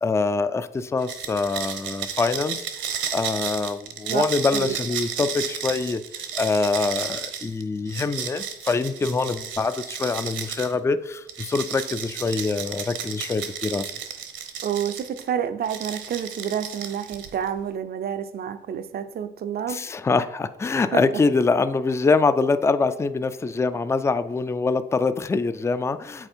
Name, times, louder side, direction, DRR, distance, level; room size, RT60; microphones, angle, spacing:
voice 1, 0.0-2.6 3.1-6.0 6.3-13.9 19.7-26.3, left 4 dB, 15° left, 0.4 m, -24 dB
sound 1, 1.0-10.7 11.3-15.2 15.6-17.5, right 7 dB, 70° right, 1.0 m, -33 dB
voice 2, 14.6-19.8 20.7-21.0, right 9 dB, 50° right, 0.5 m, -29 dB
8.0 x 4.3 x 4.4 m
cardioid pair, 90°, 20 cm